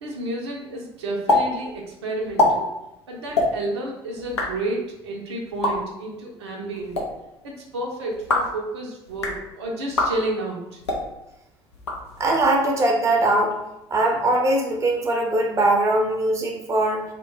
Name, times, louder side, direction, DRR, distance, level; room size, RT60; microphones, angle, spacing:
voice 1, 0.0-2.7 3.1-7.0 7.4-10.8, right 2 dB, 75° right, -1 dB, 0.5 m, -31 dB
sound 1, 1.3-1.4 1.7-1.8 2.2-2.5 3.3-3.5 4.2-4.5 5.5-5.7 6.7-7.0 8.1-8.5 9.1-9.4 9.9-10.1 10.8-11.0 11.7-12.4, left 2 dB, 85° left, 0.4 m, -23 dB
voice 2, 12.2-13.5 13.9-17.0, right 2 dB, 20° right, 1 dB, 0.5 m, -21 dB
2.1 x 2.1 x 3.0 m, 0.88 s
figure-of-eight pair, 60°, 14 cm